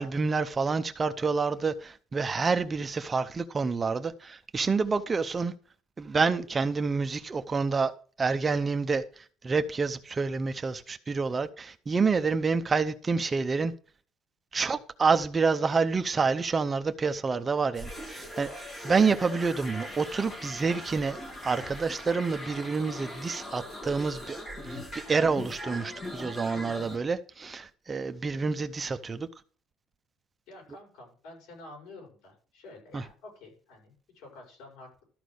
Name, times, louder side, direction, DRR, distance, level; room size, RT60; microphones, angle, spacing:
voice 1, 0.0-5.5 6.0-7.9 8.2-13.7 14.5-18.5 18.8-21.2 21.4-24.4 24.6-29.3 32.9-33.0, right 4 dB, 20° right, 0.6 m, -28 dB
sound 1, 17.7-27.0, equal, 25° left, 3.0 m, -40 dB
voice 2, 30.5-35.0, left 2 dB, 85° left, 7.0 m, -49 dB
13.5 x 5.1 x 6.3 m
cardioid pair, 160°, 0 cm